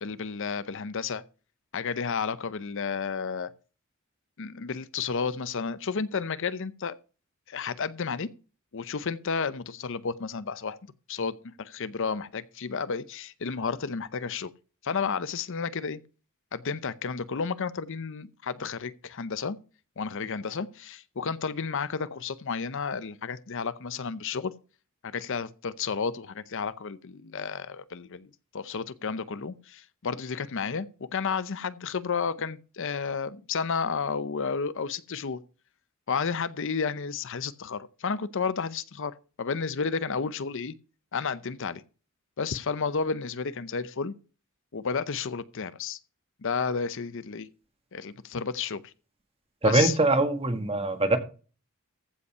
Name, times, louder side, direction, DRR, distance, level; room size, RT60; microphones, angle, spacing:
voice 1, 0.0-1.2 1.7-3.5 4.4-6.9 7.5-8.3 8.7-10.8 11.1-14.5 14.8-16.0 16.5-19.6 20.0-24.5 25.0-28.3 28.5-35.4 36.1-40.7 41.1-41.8 42.4-44.1 44.7-46.0 46.4-47.5 47.9-48.9 49.6-50.0, left 5 dB, 60° left, 0.7 m, -32 dB
voice 2, 49.6-51.2, right 2 dB, 25° right, 1.6 m, -23 dB
15.0 x 5.5 x 5.5 m
head